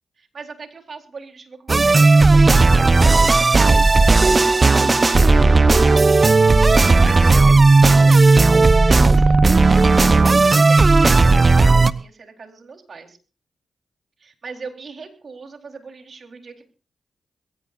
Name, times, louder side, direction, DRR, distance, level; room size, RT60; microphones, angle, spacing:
voice 1, 0.2-6.3 7.0-9.5 10.1-13.2 14.2-16.6, right 4 dB, 60° right, 3 dB, 4.1 m, -40 dB
sound 1, 1.7-11.9, right 3 dB, 40° right, 0.9 m, -13 dB
22.5 x 17.0 x 2.6 m, 0.37 s
supercardioid pair, 45°, 0 cm